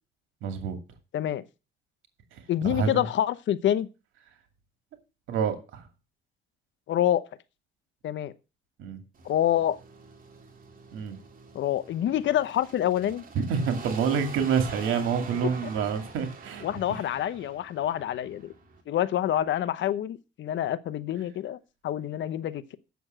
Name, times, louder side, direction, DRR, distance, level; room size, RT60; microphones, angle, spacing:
voice 1, 0.4-0.8 2.6-3.0 5.3-5.8 8.8-9.0 10.9-11.2 13.5-16.6 16.9-17.0, right 6 dB, 90° right, 2.4 m, -27 dB
voice 2, 1.1-1.4 2.5-3.9 6.9-7.3 8.0-8.3 9.2-9.8 11.5-13.2 16.6-18.5 18.9-22.8, left 11 dB, 70° left, 0.9 m, -27 dB
sound 1, 9.1-18.8, right 4 dB, 45° right, 2.9 m, -45 dB
8.1 x 7.0 x 7.5 m
cardioid pair, 90°, 20 cm